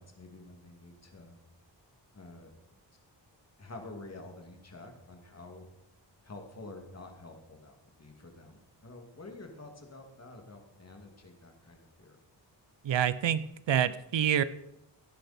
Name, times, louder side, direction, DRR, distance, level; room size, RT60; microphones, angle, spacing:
voice 1, 0.0-1.4 2.1-2.5 3.6-5.7 6.2-12.2, left 2 dB, 35° left, 3 dB, 2.4 m, -49 dB
voice 2, 12.8-14.4, right 9 dB, 75° right, 16 dB, 0.7 m, -27 dB
16.0 x 10.0 x 4.3 m, 0.84 s
wide cardioid pair, 105°, 44 cm